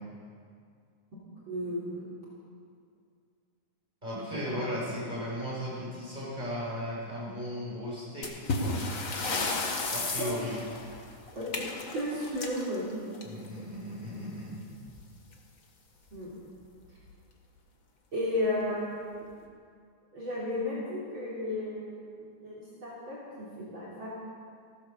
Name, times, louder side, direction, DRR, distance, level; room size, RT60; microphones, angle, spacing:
voice 1, 1.5-2.1 4.5-4.6 10.2-10.3 11.4-13.0 16.1-16.3 18.1-19.0 20.1-22.1 22.4-24.1, left 1 dB, 40° right, -7 dB, 4.0 m, -34 dB
voice 2, 4.0-8.8 9.9-10.6 13.2-14.6, equal, 15° right, -7 dB, 5.9 m, -36 dB
sound 1, 8.2-13.6 14.9-15.0 15.3-15.4 16.1-16.2 16.8-17.1, left 3 dB, 40° left, 1.1 m, -33 dB
15.5 x 13.5 x 6.8 m, 2.2 s
omnidirectional pair, 3.5 m